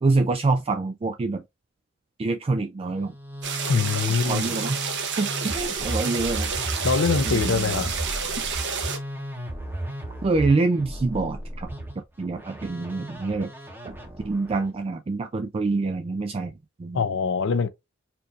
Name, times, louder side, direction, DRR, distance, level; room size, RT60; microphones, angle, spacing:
voice 1, 0.0-1.4 2.2-3.1 4.3-4.8 5.2-6.5 7.2-7.9 10.2-11.7 12.2-13.5 13.8-14.0 14.2-16.5 16.8-17.0, right 3 dB, 25° right, 0.3 m, -26 dB
Musical instrument, 2.9-14.6, right 1 dB, 10° right, 0.9 m, -35 dB
sound 1, 3.4-9.0, right 6 dB, 60° right, 0.8 m, -30 dB
voice 2, 3.7-4.5 6.8-7.9 16.9-17.7, left 5 dB, 65° left, 0.5 m, -23 dB
4.4 x 2.6 x 2.5 m
head